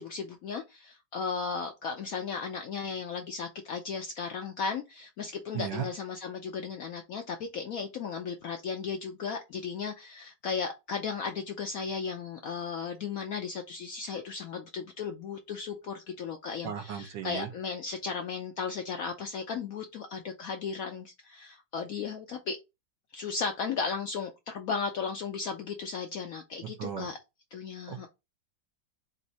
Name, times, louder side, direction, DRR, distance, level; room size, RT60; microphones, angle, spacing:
voice 1, 0.0-22.6 23.1-27.2 27.5-28.1, left 5 dB, 70° left, 0.8 m, -35 dB
voice 2, 5.5-5.9 16.6-17.5 26.8-27.1 27.9-28.1, right 9 dB, 75° right, 1.5 m, -35 dB
4.0 x 2.6 x 4.0 m
omnidirectional pair, 2.0 m